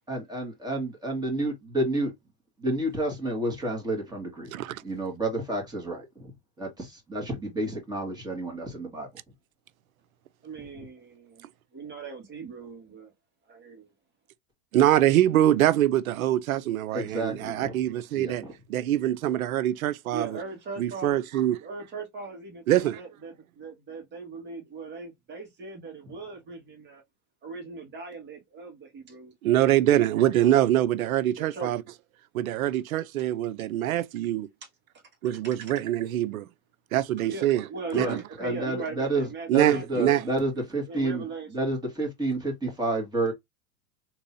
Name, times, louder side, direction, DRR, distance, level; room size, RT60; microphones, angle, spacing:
voice 1, 0.1-2.1 2.6-4.5 4.8-9.1 16.9-17.8 18.1-18.5 37.9-43.3, right 2 dB, 10° right, 1.9 m, -30 dB
voice 2, 4.5-4.8 14.7-18.4 18.7-20.4 20.8-21.6 22.7-23.0 29.4-31.8 32.3-34.5 35.2-36.5 36.9-37.7 37.9-38.2 39.5-40.2, right 12 dB, 90° right, 0.6 m, -24 dB
voice 3, 10.4-13.1 13.5-13.9 20.1-21.2 21.6-27.0 27.4-29.3 29.9-30.3 31.4-31.7 37.2-40.2 40.9-41.5, right 4 dB, 25° right, 1.8 m, -39 dB
3.7 x 2.9 x 2.6 m
hypercardioid pair, 120°, 41 cm